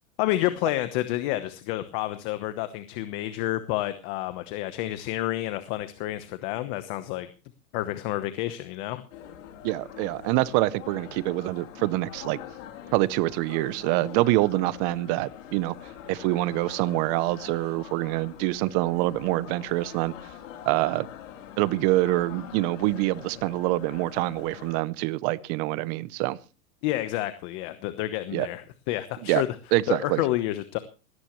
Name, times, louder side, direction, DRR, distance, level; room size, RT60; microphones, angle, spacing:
voice 1, 0.2-7.3 7.7-9.0 26.8-29.5 29.9-30.8, left 15 dB, 35° left, 11 dB, 1.1 m, -29 dB
sound 1, 9.1-24.8, left 10 dB, 60° left, 3.5 m, -44 dB
voice 2, 9.6-12.4 12.9-15.7 16.1-20.1 20.7-21.1 21.6-26.4 28.3-28.5 29.2-29.4 29.7-30.2, right 18 dB, 30° right, 19 dB, 0.7 m, -25 dB
18.0 x 17.0 x 3.1 m, 0.34 s
supercardioid pair, 155°, 43 cm